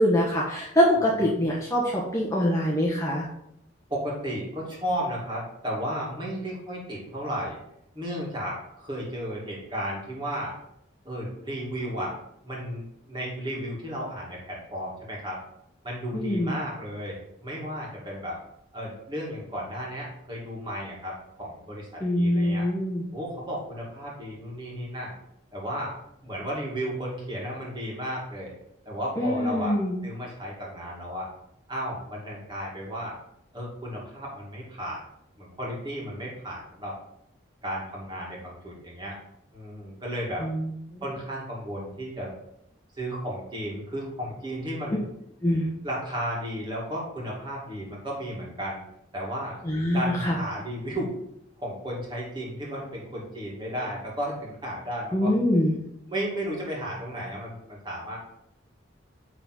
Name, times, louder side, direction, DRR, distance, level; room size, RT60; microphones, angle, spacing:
voice 1, 0.0-3.3 16.1-16.5 22.0-23.0 29.2-30.0 40.4-40.7 45.4-45.7 49.6-50.4 55.1-55.7, equal, 15° left, -4 dB, 1.0 m, -24 dB
voice 2, 3.9-7.6 7.9-10.5 11.0-12.1 12.4-15.4 15.8-18.4 18.7-22.7 23.1-25.2 25.5-25.9 26.2-28.5 28.9-31.3 31.7-33.1 33.5-35.0 35.4-37.0 37.6-39.2 39.5-40.5 41.0-42.3 43.0-45.1 45.8-48.8 49.1-49.6 49.9-51.1 51.6-55.3 56.1-58.2, equal, 25° right, -4 dB, 2.3 m, -34 dB
9.2 x 3.9 x 4.2 m, 0.77 s
head